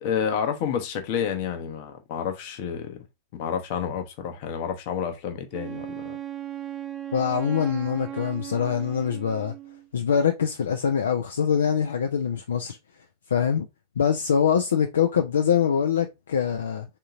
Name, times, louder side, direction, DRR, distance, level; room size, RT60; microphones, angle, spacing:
voice 1, 0.0-3.0 3.3-6.2, left 7 dB, 45° left, 0.9 m, -29 dB
Wind instrument woodwind instrument, 5.5-9.9, right 11 dB, 30° right, 0.7 m, -37 dB
voice 2, 7.1-9.5 9.9-12.8 13.3-13.7 14.0-16.9, left 7 dB, 65° left, 0.4 m, -24 dB
3.7 x 2.8 x 3.5 m
figure-of-eight pair, 90°, 0 cm